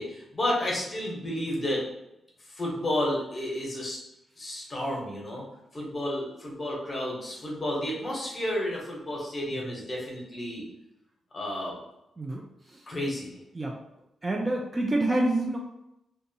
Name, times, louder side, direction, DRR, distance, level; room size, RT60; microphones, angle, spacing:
voice 1, 0.0-1.8 2.5-4.0 4.4-5.4 5.7-10.6 11.3-11.8 12.9-13.4, left 1 dB, 30° left, -3 dB, 0.9 m, -31 dB
voice 2, 14.2-15.6, right 1 dB, 20° right, 0 dB, 0.3 m, -27 dB
2.7 x 2.2 x 2.7 m, 0.84 s
wide cardioid pair, 135°, 0 cm